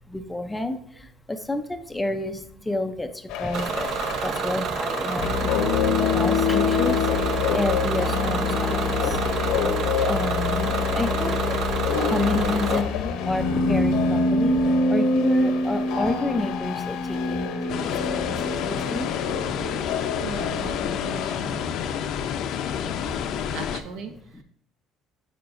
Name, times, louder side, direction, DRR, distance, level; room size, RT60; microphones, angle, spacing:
voice 1, 0.1-3.9 4.2-9.4 10.0-19.1 21.3-21.4 21.6-22.1 22.9-23.2 24.3-24.4, left 2 dB, 10° left, 7 dB, 0.4 m, -30 dB
sound 1, 3.3-21.4, left 4 dB, 80° left, 0.8 m, -25 dB
Bus / Engine, 3.5-12.8, right 6 dB, 50° right, 0.6 m, -28 dB
voice 2, 12.6-13.0 20.2-21.7 23.5-24.4, right 5 dB, 80° right, 5 dB, 1.1 m, -39 dB
sound 2, 17.7-23.8, left 8 dB, 60° left, 0.5 m, -29 dB
9.4 x 5.0 x 2.5 m, 0.65 s
cardioid pair, 155°, 0 cm